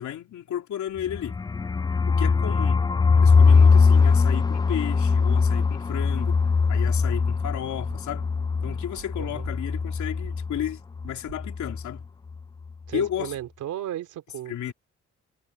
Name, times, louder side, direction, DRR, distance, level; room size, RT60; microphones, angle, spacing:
voice 1, 0.0-1.3 2.1-2.8 3.2-6.4 6.7-8.3 8.6-12.1 12.9-13.4 14.5-14.7, left 11 dB, 70° left, 3.5 m, -33 dB
sound 1, 1.0-10.7 11.0-11.1 11.4-11.8, left 5 dB, 15° left, 0.3 m, -21 dB
sound 2, 7.4-8.4 8.7-11.4, right 9 dB, 65° right, 3.9 m, -48 dB
voice 2, 9.2-9.5 12.9-14.7, right 12 dB, 80° right, 3.3 m, -35 dB
cardioid pair, 90°, 30 cm